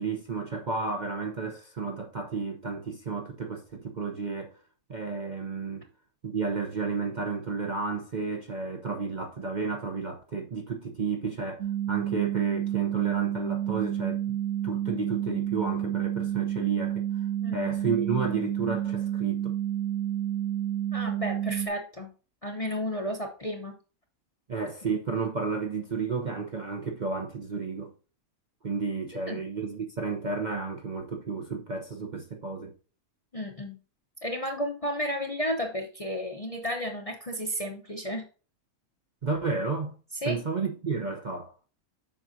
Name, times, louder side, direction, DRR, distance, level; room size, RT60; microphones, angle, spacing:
voice 1, 0.0-4.6 4.9-5.9 6.2-14.4 14.6-17.3 17.5-19.5 24.5-27.9 28.6-32.7 39.2-40.0 40.2-41.5, right 4 dB, 40° right, 0.7 m, -32 dB
sound 1, 11.6-21.7, right 11 dB, 80° right, 1.1 m, -30 dB
voice 2, 17.4-17.7 20.9-22.1 22.4-23.8 29.3-29.4 33.3-33.8 34.2-38.3 40.2-40.4, equal, 30° left, 0.7 m, -32 dB
7.7 x 6.0 x 2.7 m
omnidirectional pair, 1.5 m